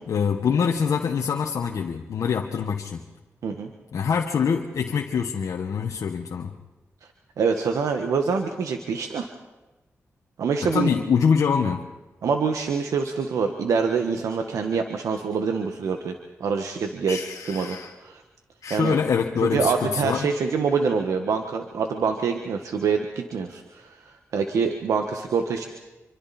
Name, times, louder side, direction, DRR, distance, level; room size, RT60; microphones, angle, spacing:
voice 1, 0.0-3.0 3.9-6.5 10.6-11.8 17.1-17.9 18.6-20.3, left 6 dB, 85° left, 1 dB, 1.4 m, -24 dB
voice 2, 7.4-9.3 10.4-10.9 12.2-16.1 16.4-17.2 17.5-18.2 18.7-19.0 19.4-25.7, right 5 dB, 90° right, 5 dB, 1.5 m, -25 dB
26.5 x 25.0 x 4.3 m, 1.1 s
cardioid pair, 55°, 5 cm